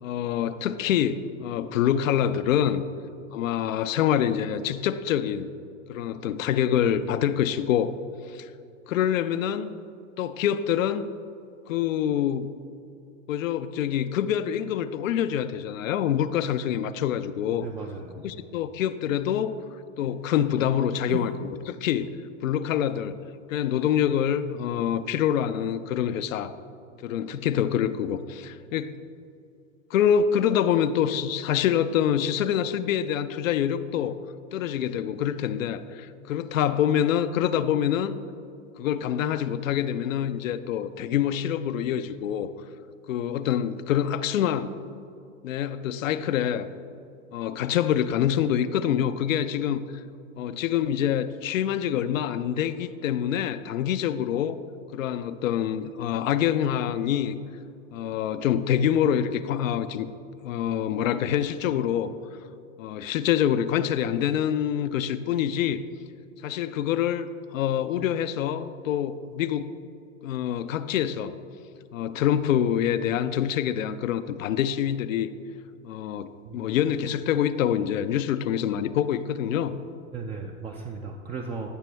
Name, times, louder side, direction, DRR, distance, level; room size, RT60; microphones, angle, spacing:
voice 1, 0.0-2.8 3.3-5.5 5.9-7.9 8.3-8.5 8.9-9.7 10.2-11.1 11.7-12.5 13.3-17.7 18.2-19.6 20.0-21.3 21.7-22.1 22.4-23.2 23.5-26.5 27.0-28.9 29.9-34.2 34.5-38.2 38.8-42.5 43.1-44.7 45.4-46.7 47.3-49.8 50.4-54.6 54.9-57.4 57.9-60.1 60.4-62.1 62.8-65.8 66.4-69.7 70.2-71.3 71.9-75.3 75.8-79.8, left 9 dB, 75° left, 12 dB, 0.6 m, -26 dB
voice 2, 17.5-18.2 20.0-20.1 21.1-21.2 76.4-76.6 80.1-81.7, right 5 dB, 15° right, 1 dB, 0.4 m, -36 dB
14.0 x 5.9 x 3.3 m, 2.6 s
hypercardioid pair, 105°, 40 cm